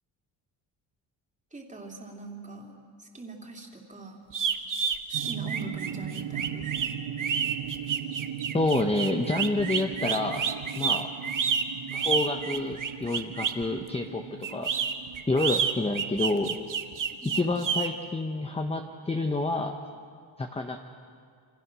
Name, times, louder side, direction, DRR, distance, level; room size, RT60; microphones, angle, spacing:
voice 1, 1.5-4.2 5.1-6.7 17.2-17.4, right 2 dB, 15° right, 0 dB, 3.2 m, -42 dB
sound 1, 4.3-13.6 14.4-17.9, right 7 dB, 40° right, 1.3 m, -29 dB
sound 2, 5.1-17.2, right 9 dB, 75° right, 1.2 m, -39 dB
voice 2, 8.5-10.5 10.8-11.1 11.9-14.2 14.5-14.7 15.3-16.6 17.2-19.8 20.4-20.8, left 2 dB, 15° left, 4 dB, 1.0 m, -28 dB
28.0 x 26.0 x 6.2 m, 2.2 s
cardioid pair, 140°, 46 cm